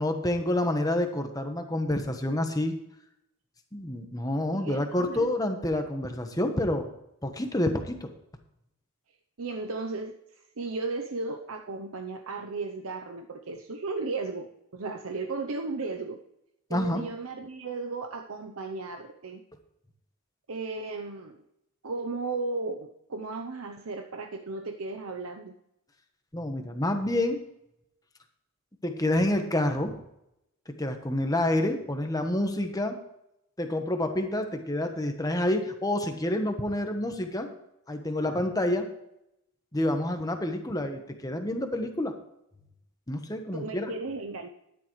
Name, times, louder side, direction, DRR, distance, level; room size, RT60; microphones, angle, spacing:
voice 1, 0.0-2.8 3.7-6.9 7.2-8.1 16.7-17.0 26.3-27.4 28.8-29.9 30.8-33.0 33.6-37.5 37.9-38.9 39.7-42.1 43.1-43.9, left 1 dB, 15° left, 5 dB, 1.1 m, -28 dB
voice 2, 4.5-5.3 9.4-10.1 10.6-16.2 16.7-19.4 20.5-21.4 21.8-25.5 43.5-44.5, right 3 dB, 75° right, 4 dB, 0.8 m, -35 dB
12.5 x 10.5 x 3.2 m, 0.82 s
head